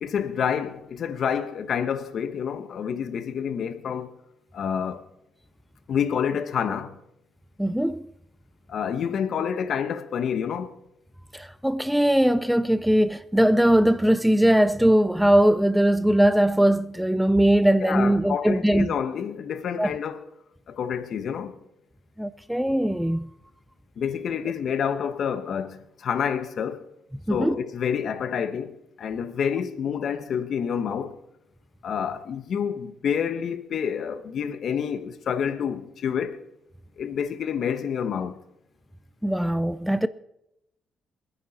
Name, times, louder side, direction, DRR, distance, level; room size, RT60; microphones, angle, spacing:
voice 1, 0.0-4.1 4.5-5.0 5.9-7.0 8.7-10.7 17.8-20.2 20.7-21.6 24.0-26.9 27.3-31.2 31.8-36.4 37.0-38.4, left 7 dB, 60° left, 1.3 m, -28 dB
voice 2, 7.6-8.0 11.3-18.9 19.8-19.9 22.2-23.3 27.3-27.6 39.2-40.1, right 1 dB, ahead, 0.5 m, -20 dB
27.5 x 9.6 x 4.3 m
cardioid pair, 90°, 0 cm